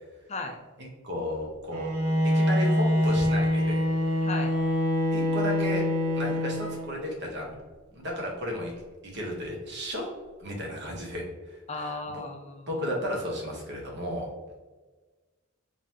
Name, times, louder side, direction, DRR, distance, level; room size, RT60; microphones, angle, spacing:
voice 1, 0.8-1.9 2.2-3.8 5.1-5.8 6.1-7.6 7.9-8.7 9.0-10.1 10.4-12.2 12.7-14.3, equal, 55° right, -1 dB, 1.0 m, -34 dB
Bowed string instrument, 1.7-7.1, left 1 dB, 80° right, 0.8 m, -25 dB
voice 2, 4.2-4.5 11.7-12.8, left 3 dB, 30° left, 4 dB, 0.5 m, -36 dB
3.7 x 3.2 x 2.8 m, 1.3 s
head